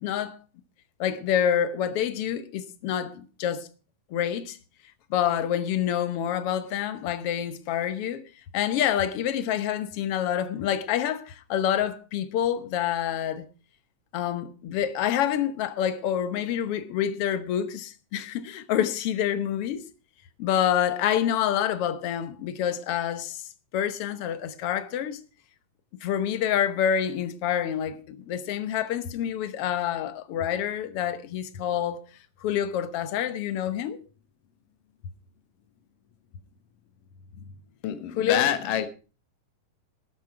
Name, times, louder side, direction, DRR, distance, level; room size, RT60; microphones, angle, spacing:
voice 1, 0.0-0.4 1.0-3.7 4.1-4.6 5.1-8.2 8.5-13.4 14.1-19.8 20.4-23.4 23.7-25.2 26.0-32.0 32.4-34.0 38.1-38.7, left 10 dB, 65° left, 1.5 m, -27 dB
voice 2, 37.8-38.9, left 10 dB, 80° left, 2.8 m, -26 dB
12.5 x 11.0 x 4.8 m
omnidirectional pair, 3.8 m